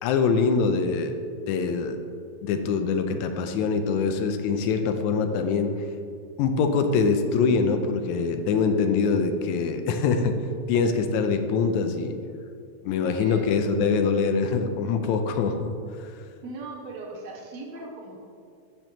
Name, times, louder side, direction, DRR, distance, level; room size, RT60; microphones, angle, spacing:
voice 1, 0.0-1.1 1.5-2.0 2.4-5.7 6.4-10.4 10.7-12.2 12.8-15.7 16.0-16.1, left 5 dB, 90° left, 7 dB, 2.0 m, -24 dB
voice 2, 13.2-13.6 16.4-18.2, right 1 dB, 75° right, 0 dB, 2.1 m, -37 dB
13.5 x 6.0 x 3.0 m, 2.3 s
omnidirectional pair, 3.3 m